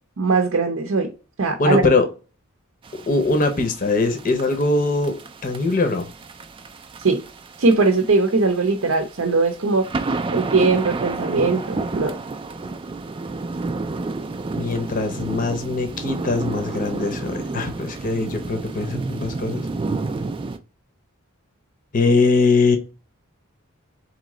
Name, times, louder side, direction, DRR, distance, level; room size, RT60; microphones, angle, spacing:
voice 1, 0.2-1.1 1.4-1.8 7.0-7.2 7.6-9.9 10.3-12.1, right 3 dB, 60° right, 0.6 m, -20 dB
voice 2, 1.6-2.1 3.1-5.1 5.4-6.1 14.5-19.7 21.9-22.8, left 3 dB, 40° left, 0.7 m, -21 dB
sound 1, 2.8-20.6, right 3 dB, 25° right, 0.3 m, -31 dB
4.0 x 3.1 x 3.7 m
head